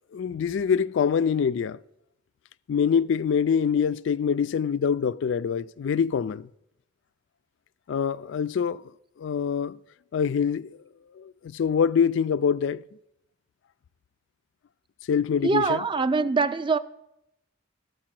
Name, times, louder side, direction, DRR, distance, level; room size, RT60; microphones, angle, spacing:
voice 1, 0.1-1.8 2.7-6.5 7.9-8.8 9.2-9.8 10.1-10.8 11.1-12.8 15.1-15.8, left 7 dB, 65° left, 0.3 m, -25 dB
voice 2, 15.4-16.8, right 4 dB, 25° right, 0.4 m, -23 dB
13.5 x 4.7 x 7.5 m
head